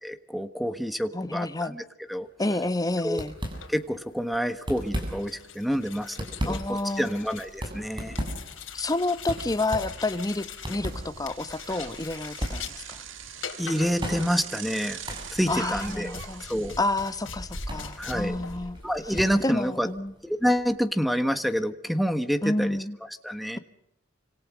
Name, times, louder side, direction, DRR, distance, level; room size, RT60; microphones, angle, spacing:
voice 1, 0.0-2.3 3.0-3.2 3.7-8.2 13.6-15.0 15.3-16.1 16.4-16.7 18.0-18.4 18.8-19.9 20.2-22.8 23.2-23.6, equal, ahead, 1.4 m, -28 dB
voice 2, 1.1-1.8 2.4-3.3 6.5-7.2 8.7-13.0 15.5-16.4 16.8-18.8 19.4-20.1 22.4-23.0, left 2 dB, 20° left, 1.1 m, -29 dB
sound 1, 2.2-2.5 2.7-2.8 3.1-4.0 4.5-5.5 5.9-20.8, equal, 25° right, 7.5 m, -37 dB
sound 2, 3.4-19.4, left 6 dB, 75° left, 4.0 m, -43 dB
Bicycle, 4.3-4.4 4.8-18.6, right 9 dB, 70° right, 1.9 m, -45 dB
29.0 x 26.5 x 6.3 m
head